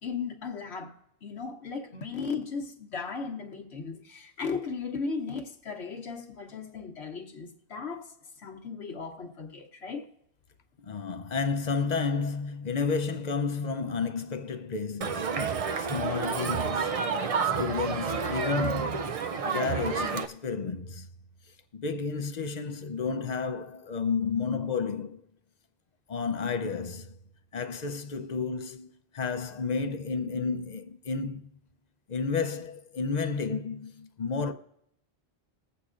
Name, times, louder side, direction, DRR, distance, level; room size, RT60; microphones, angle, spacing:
voice 1, 0.0-10.1, left 5 dB, 75° left, 1.2 m, -36 dB
voice 2, 10.8-17.1 17.4-19.1 19.4-21.1 21.7-25.2 26.1-27.2 27.5-31.5 32.1-34.5, left 5 dB, 50° left, 0.6 m, -31 dB
Crowd, 15.0-20.3, right 5 dB, 55° right, 0.4 m, -29 dB
21.0 x 8.0 x 2.5 m
omnidirectional pair, 1.1 m